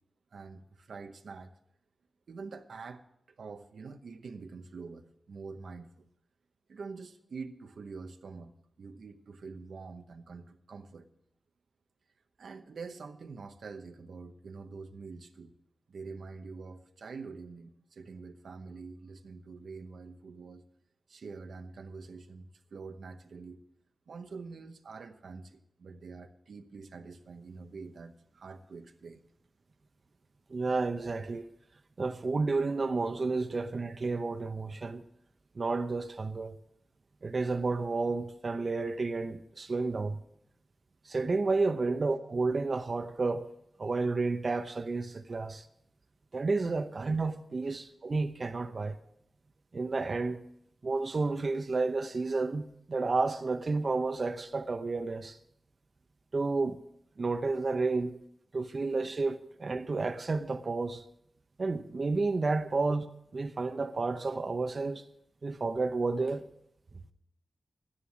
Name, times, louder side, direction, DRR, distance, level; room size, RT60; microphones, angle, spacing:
voice 1, 0.3-1.5 2.3-3.1 3.4-6.1 6.7-8.5 8.8-11.1 12.4-15.5 15.9-20.6 21.1-23.6 24.1-29.2 41.9-42.0 45.3-45.5 47.7-47.8, right 4 dB, 85° right, 0.9 m, -45 dB
voice 2, 30.5-31.5 32.0-35.0 35.6-36.6 37.2-40.2 41.0-43.5 43.8-45.7 46.3-49.0 49.7-50.4 50.8-55.4 56.3-56.8 57.2-58.1 58.5-61.0 61.6-63.0 63.3-65.0 65.4-66.5, right 3 dB, 50° right, 0.7 m, -31 dB
11.5 x 10.0 x 6.1 m
wide cardioid pair, 85°, 0 cm